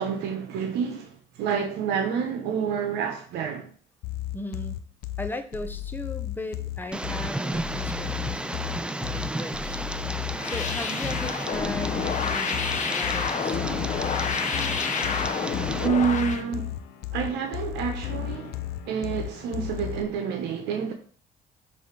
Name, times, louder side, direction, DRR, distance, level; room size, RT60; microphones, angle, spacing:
voice 1, 0.0-3.7 15.8-16.8 17.1-20.9, right 6 dB, 85° right, 1.0 m, -28 dB
sound 1, 4.0-20.0, left 12 dB, 70° left, 0.6 m, -34 dB
voice 2, 4.3-4.8 5.2-9.8 10.4-13.8, left 1 dB, 10° left, 0.8 m, -37 dB
Tick, 6.9-15.9, right 1 dB, 5° right, 0.3 m, -33 dB
sound 2, 10.4-16.4, left 6 dB, 45° left, 0.9 m, -29 dB
6.4 x 3.6 x 5.2 m
cardioid pair, 110°, 17 cm